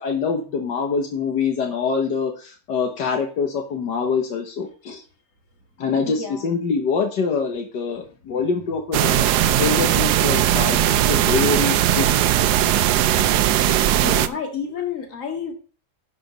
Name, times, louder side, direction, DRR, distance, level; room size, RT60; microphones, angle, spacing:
voice 1, 0.0-5.0 5.8-12.1 13.2-13.6 14.0-14.1, left 5 dB, 80° left, 3 dB, 1.9 m, -25 dB
voice 2, 5.9-6.5 8.0-8.1 13.9-15.5, left 6 dB, 50° left, 3 dB, 2.3 m, -30 dB
sound 1, 8.9-14.3, right 12 dB, 75° right, 1.2 m, -18 dB
11.5 x 5.1 x 5.1 m, 0.37 s
omnidirectional pair, 1.8 m